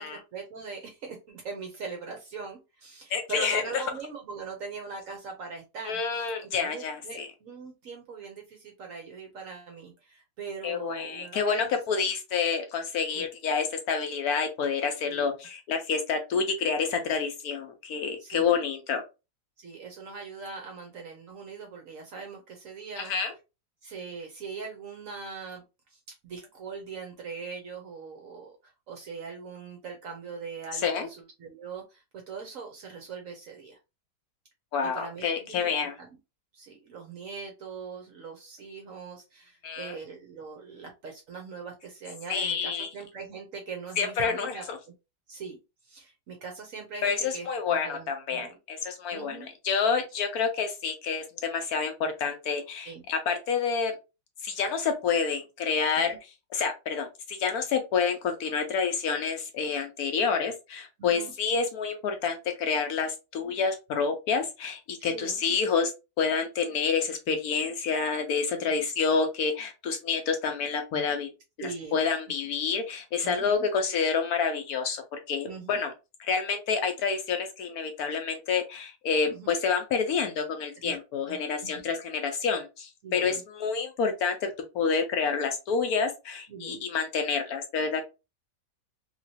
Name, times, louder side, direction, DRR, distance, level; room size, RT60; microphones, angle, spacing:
voice 1, 0.0-6.3 6.6-11.7 13.1-13.3 15.0-15.3 18.2-18.5 19.6-23.1 23.8-25.6 25.9-33.8 34.8-36.2 36.5-44.6 45.3-45.6 45.8-48.6 49.1-49.5 52.8-53.0 56.0-56.2 61.0-61.3 65.0-65.4 68.7-68.8 71.6-72.0 73.2-73.7 75.5-75.8 79.3-79.5 80.8-80.9 81.3-81.7 83.0-83.4 86.5-86.8, right 5 dB, 65° right, 3 dB, 0.8 m, -41 dB
voice 2, 3.1-3.8 5.9-7.3 10.6-19.0 23.0-23.3 30.7-31.1 34.7-35.9 39.6-39.9 42.3-42.9 44.0-44.8 47.0-53.9 54.4-56.2 56.5-65.9 66.2-71.3 71.6-75.9 76.3-88.0, left 5 dB, 70° left, 5 dB, 1.0 m, -28 dB
3.0 x 2.9 x 2.7 m, 0.27 s
omnidirectional pair, 1.9 m